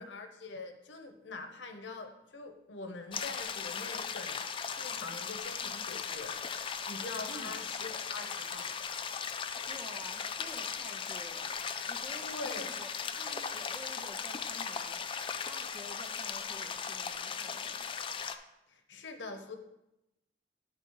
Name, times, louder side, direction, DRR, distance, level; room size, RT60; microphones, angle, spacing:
voice 1, 0.0-6.4 6.9-8.8 12.2-12.7 18.7-19.6, left 3 dB, 85° left, 5 dB, 0.9 m, -44 dB
sound 1, 3.1-18.4, left 6 dB, 30° left, 0.4 m, -38 dB
voice 2, 7.3-7.6 9.7-11.5 11.8-15.0 15.5-17.9, equal, 15° right, 4 dB, 0.8 m, -50 dB
9.9 x 3.8 x 4.7 m, 0.89 s
head